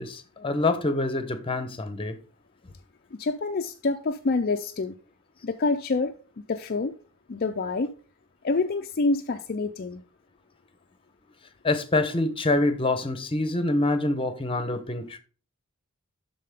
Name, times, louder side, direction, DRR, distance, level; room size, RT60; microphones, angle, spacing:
voice 1, 0.0-2.2 11.6-15.2, left 2 dB, 25° left, 0.9 m, -26 dB
voice 2, 3.1-5.0 5.4-6.1 6.5-7.0 7.3-7.9 8.4-10.0, left 3 dB, 45° left, 0.5 m, -27 dB
12.5 x 4.2 x 3.6 m
head